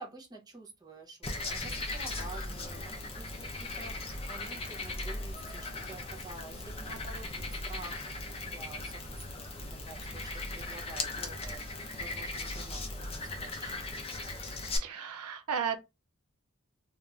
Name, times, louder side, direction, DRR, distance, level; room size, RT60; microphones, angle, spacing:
voice 1, 0.0-7.3 7.7-9.4 9.9-13.8 14.2-14.4, right 3 dB, 20° right, 0.6 m, -49 dB
Frog, 1.2-14.8, left 2 dB, 25° left, 0.6 m, -38 dB
voice 2, 14.8-15.8, right 7 dB, 90° right, 0.5 m, -34 dB
2.4 x 2.4 x 3.1 m
head